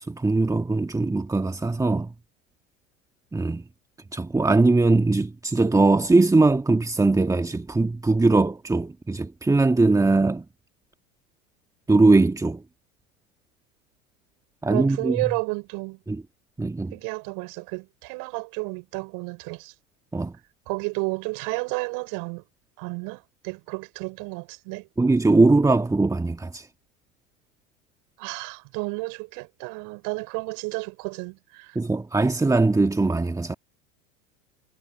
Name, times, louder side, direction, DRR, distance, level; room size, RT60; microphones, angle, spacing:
voice 1, 0.1-2.1 3.3-3.6 4.1-10.5 11.9-12.6 14.6-15.2 16.1-16.2 16.6-17.0 20.1-20.3 25.0-26.7 31.8-33.5, right 3 dB, 10° right, 1.6 m, -21 dB
voice 2, 14.7-16.0 16.9-19.7 20.7-22.4 22.8-24.9 28.2-31.8, right 29 dB, 55° right, 5.7 m, -32 dB
figure-of-eight pair, 80°, 41 cm